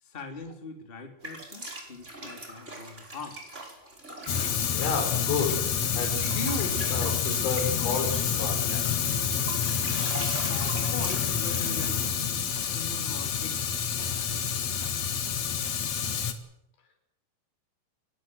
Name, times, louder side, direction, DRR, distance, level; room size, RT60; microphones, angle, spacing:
voice 1, 0.0-3.4 10.4-13.7 13.9-14.9, left 3 dB, 15° left, 3 dB, 3.1 m, -43 dB
sound 1, 1.2-12.9, right 2 dB, 15° right, 5.1 m, -42 dB
Fire, 4.3-16.3, left 7 dB, 50° left, 2.1 m, -28 dB
voice 2, 4.7-9.2, left 4 dB, 80° left, 6 dB, 6.9 m, -32 dB
30.0 x 16.5 x 8.1 m, 0.81 s
omnidirectional pair, 5.4 m